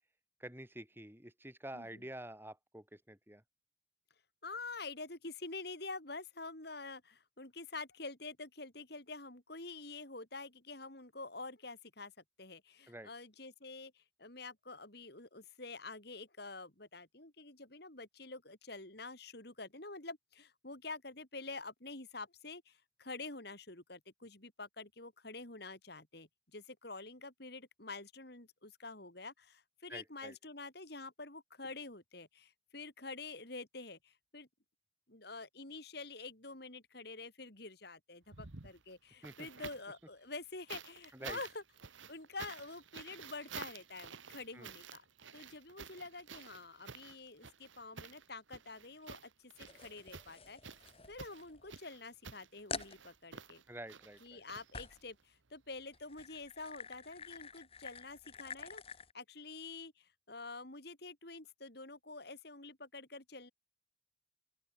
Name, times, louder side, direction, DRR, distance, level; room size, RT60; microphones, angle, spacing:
voice 1, 0.4-3.4 12.9-13.1 29.9-30.4 39.2-39.5 41.1-41.4 44.5-44.7 53.7-54.4, right 1 dB, 10° right, 3.6 m, -48 dB
voice 2, 4.4-12.1 12.4-34.5 35.1-41.6 42.1-45.0 45.3-50.6 51.1-53.6 54.2-63.5, left 3 dB, 55° left, 3.5 m, -47 dB
sound 1, 38.2-40.0 40.7-55.2 56.3-56.4, right 6 dB, 75° right, 1.5 m, -51 dB
sound 2, 49.7-51.7 52.1-52.2 52.7-53.0 54.7-55.1 55.9-59.1, left 5 dB, 30° left, 4.5 m, -48 dB
open air
head